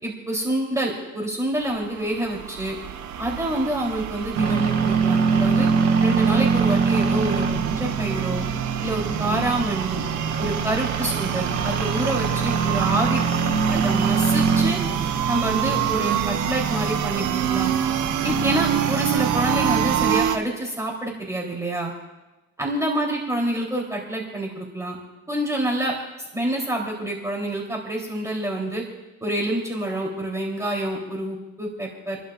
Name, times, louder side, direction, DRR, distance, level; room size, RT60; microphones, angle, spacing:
voice 1, 0.0-2.8 3.2-5.7 6.0-7.5 7.8-8.4 8.8-10.0 10.4-13.2 13.7-14.8 15.3-17.7 18.2-21.9 22.6-25.0 25.3-25.9 26.3-28.8 29.2-32.2, right 1 dB, 10° right, -3 dB, 3.4 m, -27 dB
sound 1, 1.6-20.4, right 10 dB, 80° right, 1.0 m, -28 dB
sound 2, 4.3-20.2, right 5 dB, 65° right, 2.7 m, -24 dB
30.0 x 11.5 x 2.5 m, 1.1 s
cardioid pair, 90°, 30 cm